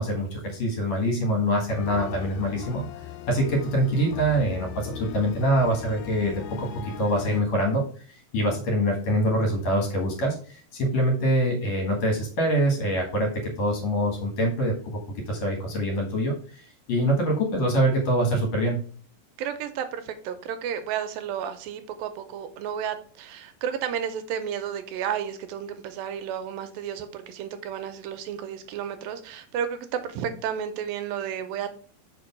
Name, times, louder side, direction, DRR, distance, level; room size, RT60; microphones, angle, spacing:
voice 1, 0.0-2.8 3.3-7.8 8.1-15.0 15.3-16.3 16.9-18.8, right 1 dB, 55° left, 1 dB, 2.4 m, -24 dB
sound 1, 1.7-7.4, left 9 dB, 85° left, 2.4 m, -39 dB
voice 2, 19.4-31.7, right 8 dB, 85° right, 9 dB, 2.4 m, -32 dB
5.2 x 5.2 x 5.1 m, 0.43 s
omnidirectional pair, 4.2 m